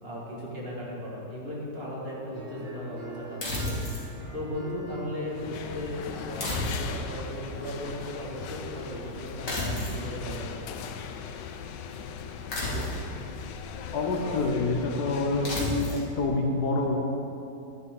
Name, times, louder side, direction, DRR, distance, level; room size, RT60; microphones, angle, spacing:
voice 1, 0.0-3.7 4.3-10.7, left 1 dB, 35° right, -5 dB, 2.2 m, -37 dB
sound 1, 2.3-9.0, right 2 dB, 60° right, 2.4 m, -44 dB
sound 2, 3.4-4.1 6.4-7.2 9.5-10.0 12.5-13.1 15.4-16.1, left 1 dB, 50° left, 2.5 m, -31 dB
sound 3, 5.3-16.0, left 7 dB, 85° left, 1.3 m, -39 dB
voice 2, 13.9-17.0, left 3 dB, 65° left, 1 dB, 1.5 m, -27 dB
11.0 x 10.5 x 3.8 m, 2.8 s
omnidirectional pair, 1.9 m